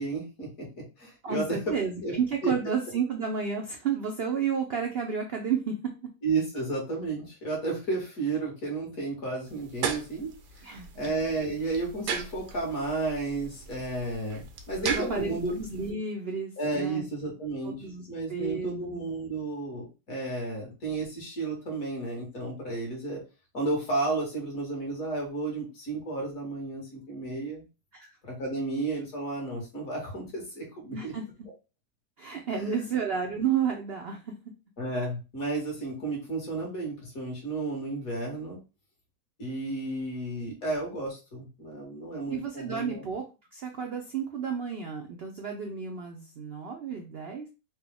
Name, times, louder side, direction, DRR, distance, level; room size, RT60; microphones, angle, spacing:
voice 1, 0.0-1.7 2.0-2.1 2.4-2.5 6.2-15.5 16.6-23.2 23.5-27.6 28.2-31.1 32.5-32.8 34.8-38.6 39.4-43.0, right 3 dB, 60° left, -1 dB, 1.9 m, -32 dB
voice 2, 1.2-5.8 10.6-10.9 14.8-17.1 17.6-19.0 27.9-28.1 30.9-31.2 32.2-34.2 42.3-43.2 43.5-47.5, right 6 dB, 65° right, 2 dB, 0.6 m, -31 dB
sound 1, 9.5-15.9, right 6 dB, 80° right, 1.2 m, -37 dB
4.5 x 2.2 x 3.4 m, 0.30 s
omnidirectional pair, 1.7 m